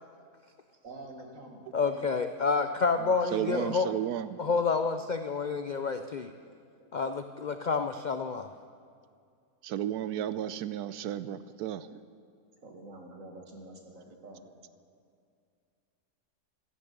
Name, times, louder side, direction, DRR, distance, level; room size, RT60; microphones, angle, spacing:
voice 1, 0.8-1.7 2.9-3.9 6.8-6.9 12.6-14.5, right 2 dB, 60° right, 2 dB, 2.3 m, -47 dB
voice 2, 1.7-3.9 4.4-6.3 6.9-8.5, left 4 dB, 75° left, 8 dB, 0.4 m, -29 dB
voice 3, 3.3-4.4 9.6-12.0, right 11 dB, 85° right, 14 dB, 1.1 m, -33 dB
16.0 x 12.0 x 6.8 m, 2.3 s
omnidirectional pair, 1.6 m